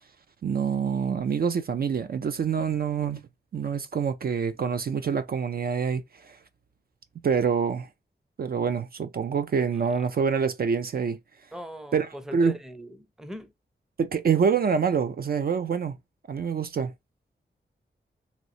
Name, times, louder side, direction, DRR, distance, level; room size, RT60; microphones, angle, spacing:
voice 1, 0.4-3.2 3.5-6.4 7.2-7.9 8.4-11.2 11.9-12.6 14.0-16.0 16.3-16.9, right 6 dB, 55° right, 0.4 m, -26 dB
voice 2, 11.5-13.5, equal, 5° right, 0.5 m, -40 dB
3.1 x 2.9 x 2.7 m
wide cardioid pair, 110°, 19 cm